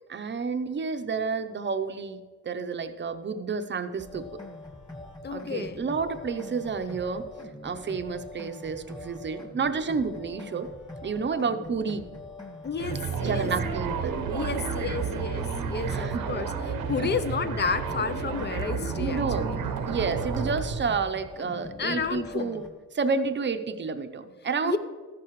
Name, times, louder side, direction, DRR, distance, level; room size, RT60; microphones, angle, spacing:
voice 1, 0.1-4.3 5.3-7.3 7.6-10.7 11.0-12.1 13.2-14.2 15.9-16.3 17.0-17.1 19.0-19.5 19.9-22.6 22.9-24.8, right 5 dB, 35° right, 9 dB, 0.7 m, -30 dB
sound 1, 4.0-22.7, left 2 dB, 15° left, 1.7 m, -43 dB
voice 2, 5.2-5.8 12.6-13.5 14.3-19.6 21.8-22.5 24.6-24.8, left 5 dB, 35° left, 13 dB, 0.6 m, -31 dB
sound 2, 12.8-21.0, right 6 dB, 85° right, 1.0 m, -31 dB
14.0 x 11.0 x 3.1 m, 1.5 s
cardioid pair, 125°, 32 cm